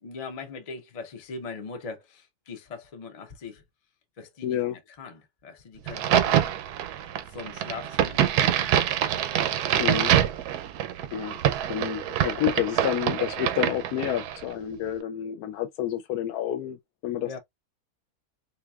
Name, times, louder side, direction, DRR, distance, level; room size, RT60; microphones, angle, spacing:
voice 1, 0.0-3.6 4.2-6.5 7.3-8.9 17.3-17.4, left 4 dB, 45° left, 0.5 m, -40 dB
voice 2, 4.4-4.8 9.8-10.1 11.1-11.4 11.7-17.4, left 11 dB, 80° left, 1.1 m, -29 dB
Crack, 5.9-14.4, right 11 dB, 90° right, 1.1 m, -25 dB
4.0 x 2.8 x 2.3 m
omnidirectional pair, 1.6 m